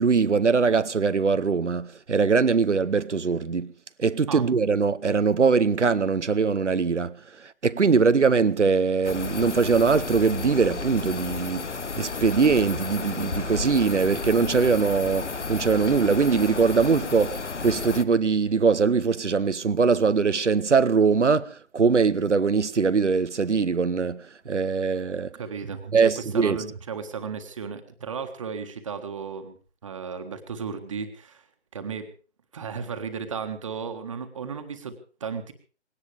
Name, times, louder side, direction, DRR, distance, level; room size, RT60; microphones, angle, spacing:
voice 1, 0.0-3.7 4.0-25.3 25.9-26.6, right 5 dB, 80° right, 0.8 m, -22 dB
sound 1, 9.0-18.0, left 4 dB, 75° left, 1.1 m, -32 dB
voice 2, 25.4-29.6 29.8-31.4 31.7-32.1 32.5-35.5, right 6 dB, 25° right, 1.7 m, -34 dB
20.5 x 17.5 x 3.4 m
figure-of-eight pair, 155°, 35 cm